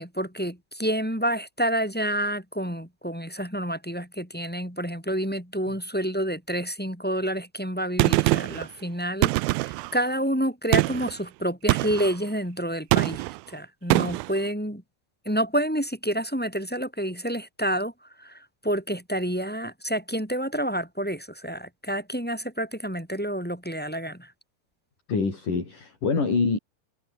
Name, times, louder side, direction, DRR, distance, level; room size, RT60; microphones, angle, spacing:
voice 1, 0.0-14.8 15.2-17.9 18.2-24.3, equal, ahead, 4.9 m, -29 dB
Gunshot gunfire, 8.0-8.7 9.2-9.9 10.7-11.1 11.7-12.1 12.9-13.4 13.9-14.3, right 21 dB, 80° right, 2.2 m, -23 dB
voice 2, 25.1-26.6, left 4 dB, 55° left, 7.8 m, -25 dB
omnidirectional pair, 4.6 m